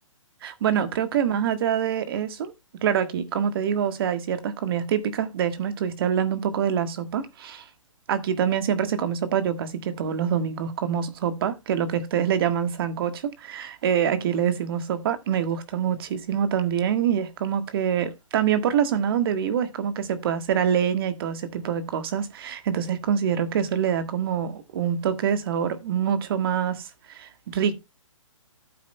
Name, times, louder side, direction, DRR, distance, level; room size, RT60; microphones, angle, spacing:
voice 1, 0.4-2.5 2.8-7.7 8.1-27.8, right 8 dB, 45° right, 1.4 m, -25 dB
14.0 x 8.4 x 2.2 m
hypercardioid pair, 145°, 17 cm